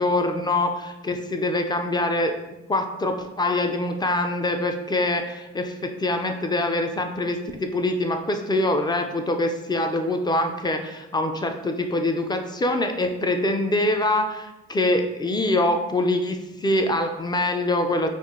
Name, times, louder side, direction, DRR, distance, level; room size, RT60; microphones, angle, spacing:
voice 1, 0.0-2.3 2.7-18.1, left 1 dB, 15° left, 5 dB, 0.3 m, -24 dB
3.6 x 2.3 x 3.6 m, 1.0 s
cardioid pair, 90°, 30 cm